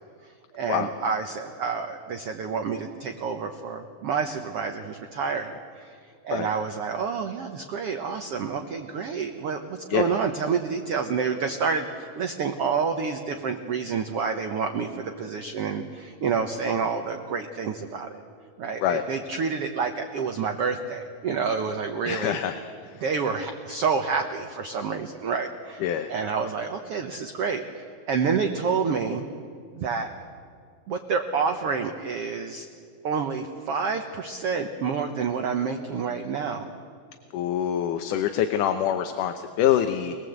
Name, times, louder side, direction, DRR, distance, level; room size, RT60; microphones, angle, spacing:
voice 1, 0.2-18.2 18.6-22.4 23.0-25.8 26.1-29.3 29.7-30.1 30.9-32.7 33.0-36.7, right 5 dB, 80° right, 5 dB, 1.3 m, -28 dB
voice 2, 22.1-22.6 22.8-23.0 25.8-26.1 37.3-40.2, left 10 dB, 70° left, 7 dB, 2.2 m, -25 dB
26.0 x 19.5 x 8.0 m, 2.2 s
omnidirectional pair, 4.1 m